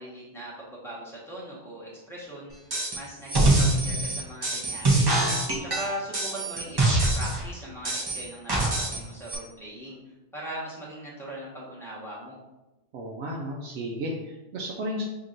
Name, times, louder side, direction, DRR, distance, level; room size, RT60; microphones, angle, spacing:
voice 1, 0.0-5.2 5.6-6.8 7.1-12.4, right 1 dB, ahead, -6 dB, 1.1 m, -40 dB
sound 1, 2.7-3.0 3.3-7.4 7.8-9.0 9.3-9.4, right 2 dB, 25° right, 0.7 m, -24 dB
voice 2, 12.9-15.0, equal, 85° right, -1 dB, 0.9 m, -33 dB
6.0 x 2.9 x 2.5 m, 1.0 s
omnidirectional pair, 1.2 m